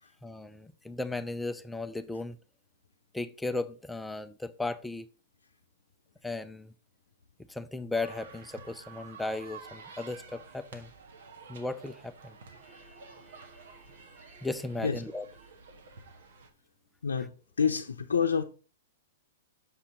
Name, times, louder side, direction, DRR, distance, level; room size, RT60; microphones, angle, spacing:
voice 1, 0.2-2.4 3.1-5.1 6.2-6.7 7.5-10.9 11.5-12.4 12.6-15.3, left 2 dB, 5° left, 0.5 m, -36 dB
sound 1, 7.9-16.5, right 4 dB, 65° right, 1.5 m, -50 dB
voice 2, 17.6-18.4, left 6 dB, 80° left, 0.6 m, -28 dB
7.2 x 5.7 x 4.0 m
hypercardioid pair, 115°, 0 cm